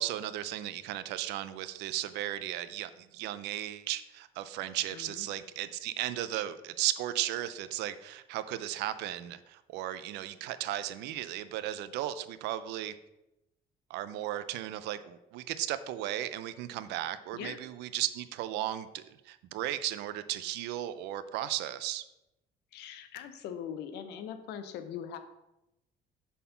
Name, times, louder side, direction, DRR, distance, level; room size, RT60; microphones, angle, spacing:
voice 1, 0.0-12.9 13.9-22.0, right 13 dB, 90° right, 13 dB, 0.5 m, -35 dB
voice 2, 4.9-5.3 17.3-17.6 22.7-25.2, left 8 dB, 85° left, 9 dB, 0.7 m, -41 dB
5.5 x 4.2 x 5.6 m, 0.90 s
cardioid pair, 110°, 17 cm